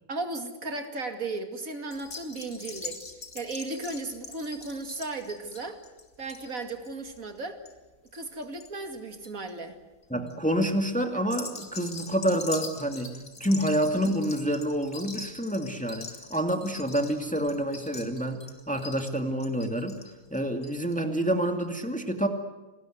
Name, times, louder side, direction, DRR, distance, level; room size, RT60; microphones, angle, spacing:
voice 1, 0.1-3.0 3.3-5.8 6.2-7.6 8.1-9.8, right 3 dB, 70° right, 6 dB, 2.7 m, -35 dB
sound 1, 1.9-8.7 9.0-9.5 10.0-10.3 11.2-21.0 21.3-21.4 21.6-21.7, left 4 dB, 65° left, 3.4 m, -43 dB
voice 2, 10.1-13.1 13.4-20.0 20.3-22.3, equal, 5° left, 5 dB, 2.2 m, -28 dB
29.0 x 20.5 x 8.0 m, 1.2 s
omnidirectional pair, 1.5 m